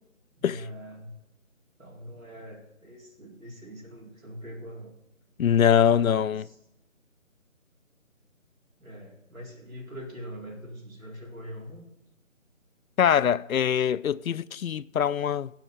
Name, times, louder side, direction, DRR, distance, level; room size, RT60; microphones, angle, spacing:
voice 1, 0.4-1.2 1.8-4.9 5.6-6.6 8.8-11.8, equal, 80° right, 4.6 m, -42 dB
voice 2, 5.4-6.5 13.0-15.5, left 9 dB, 85° left, 0.5 m, -23 dB
16.5 x 5.7 x 5.8 m
figure-of-eight pair, 170°, 40 cm